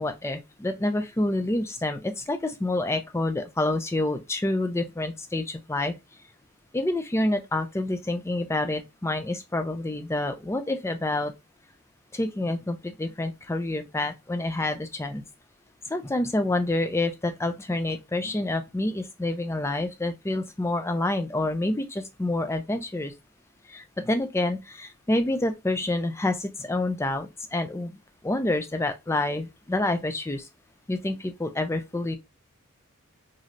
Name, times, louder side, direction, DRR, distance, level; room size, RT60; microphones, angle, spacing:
voice 1, 0.0-5.9 6.7-11.3 12.1-15.2 15.9-23.1 23.7-28.0 28.2-30.5 30.9-32.2, left 2 dB, 10° left, 0.3 m, -28 dB
3.1 x 2.7 x 2.5 m
head